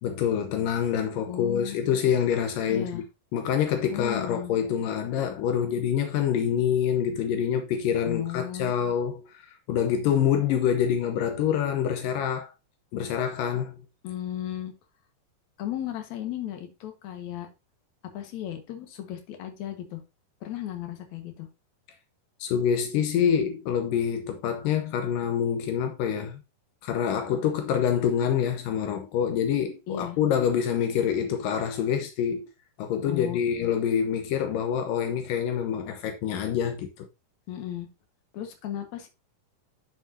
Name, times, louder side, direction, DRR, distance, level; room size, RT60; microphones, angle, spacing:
voice 1, 0.0-3.0 3.3-12.5 12.9-13.8 22.4-26.4 26.8-32.5 32.8-37.1, left 8 dB, 80° left, 2.6 m, -26 dB
voice 2, 1.3-1.8 2.7-3.0 3.9-4.5 8.1-8.7 14.0-14.7 15.6-17.5 18.1-20.0 20.4-21.5 29.9-30.2 33.1-33.4 37.5-37.9 38.3-39.1, left 11 dB, 60° left, 2.6 m, -35 dB
9.8 x 6.2 x 2.7 m
omnidirectional pair, 3.9 m